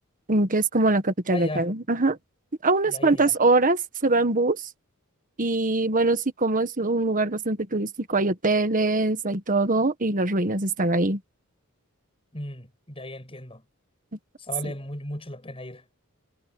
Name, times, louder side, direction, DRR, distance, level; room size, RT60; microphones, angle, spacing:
voice 1, 0.3-2.2 2.6-4.6 5.4-11.2, right 2 dB, 35° right, 1.5 m, -23 dB
voice 2, 1.3-1.7 2.8-3.3 12.3-13.6 14.4-15.8, left 1 dB, 25° left, 7.3 m, -36 dB
head